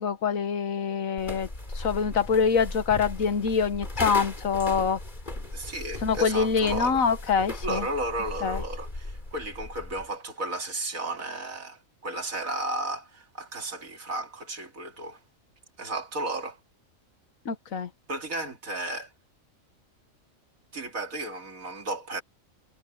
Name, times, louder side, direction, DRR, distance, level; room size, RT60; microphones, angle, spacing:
voice 1, 0.0-1.5 1.7-5.0 6.0-7.9 8.4-8.6 17.4-17.9, left 6 dB, 80° left, 1.7 m, -25 dB
sound 1, 1.2-10.1, left 2 dB, 35° left, 3.4 m, -37 dB
voice 2, 5.5-7.1 7.6-15.2 15.8-16.6 18.1-19.1 20.7-22.2, right 2 dB, 85° right, 3.0 m, -34 dB
omnidirectional pair, 1.4 m